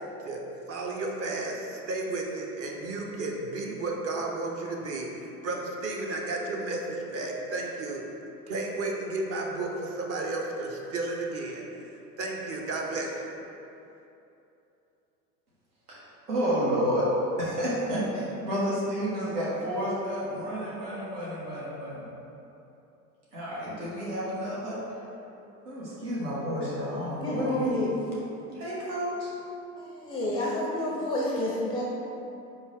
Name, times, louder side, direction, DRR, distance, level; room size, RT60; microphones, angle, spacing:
voice 1, 0.0-8.0 8.5-11.9 12.2-13.3, right 2 dB, 35° right, 0 dB, 0.5 m, -33 dB
voice 2, 15.9-17.1 17.4-22.1 23.3-24.8 25.6-27.7 28.5-29.3, equal, 90° right, -8 dB, 1.1 m, -30 dB
voice 3, 27.2-27.9 29.8-31.8, left 1 dB, 10° left, -4 dB, 0.4 m, -29 dB
4.4 x 2.7 x 3.3 m, 2.9 s
hypercardioid pair, 80°, 45 cm